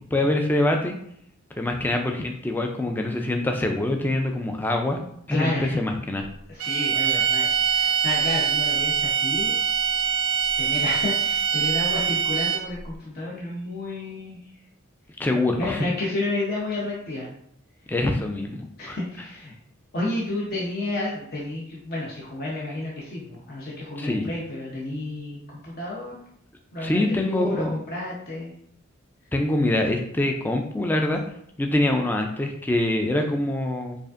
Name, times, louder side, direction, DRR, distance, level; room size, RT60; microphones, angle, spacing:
voice 1, 0.1-1.0 1.5-5.0 5.3-6.2 15.2-15.8 17.9-19.0 24.0-24.3 26.8-27.7 29.3-31.2 31.6-34.0, left 1 dB, 10° left, 3 dB, 0.3 m, -24 dB
voice 2, 5.3-5.8 6.5-9.5 10.6-14.4 15.6-17.3 18.8-19.5 19.9-26.2 26.7-28.5, left 2 dB, 50° left, -5 dB, 0.8 m, -31 dB
sound 1, 6.6-12.8, right 8 dB, 85° right, 0.4 m, -23 dB
4.9 x 2.5 x 2.5 m, 0.70 s
head